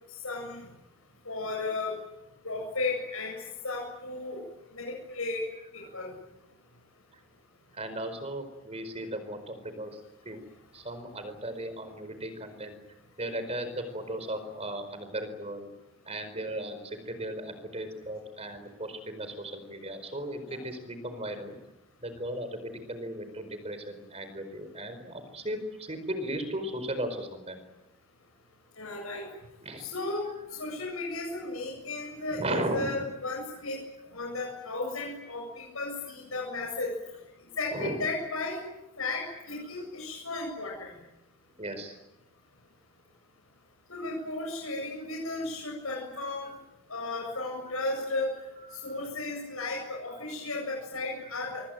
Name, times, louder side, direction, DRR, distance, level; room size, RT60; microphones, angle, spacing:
voice 1, 0.2-0.6 1.3-1.9 2.4-3.4 3.6-4.4 4.7-5.4 5.7-6.1 20.5-20.6 28.8-29.2 29.8-30.3 30.5-33.8 34.1-36.9 37.6-38.6 39.0-40.9 43.9-46.5 46.9-48.3 48.8-51.6, left 2 dB, 80° left, -1 dB, 7.7 m, -34 dB
voice 2, 7.7-10.0 10.2-10.4 10.7-12.8 13.2-15.7 16.0-21.6 22.0-27.6 29.6-29.9 32.3-33.0 37.7-38.0 41.6-41.9 47.3-47.4 48.7-49.0, right 1 dB, 30° right, 10 dB, 4.8 m, -36 dB
25.5 x 24.5 x 9.1 m, 0.96 s
head